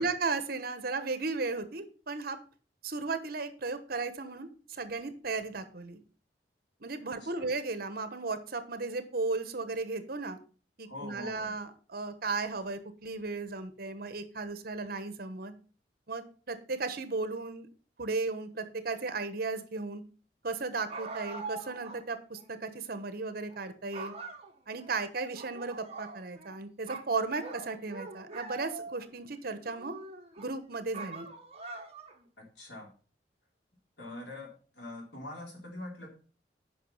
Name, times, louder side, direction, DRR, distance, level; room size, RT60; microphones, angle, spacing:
voice 1, 0.0-2.4 2.8-6.0 6.8-10.4 10.8-15.5 16.1-17.7 18.0-20.0 20.4-24.1 24.7-29.9 30.4-31.3, right 3 dB, 60° right, 11 dB, 1.2 m, -35 dB
voice 2, 10.8-11.5 32.4-32.9 34.0-36.1, left 1 dB, 80° left, 0 dB, 3.4 m, -44 dB
sound 1, 20.9-22.0 22.4-22.5 23.3-23.6 23.9-24.9 25.3-26.6 26.9-29.1 29.6-30.5 30.9-32.2, right 3 dB, 35° right, 1.4 m, -43 dB
9.3 x 5.8 x 5.5 m, 0.38 s
head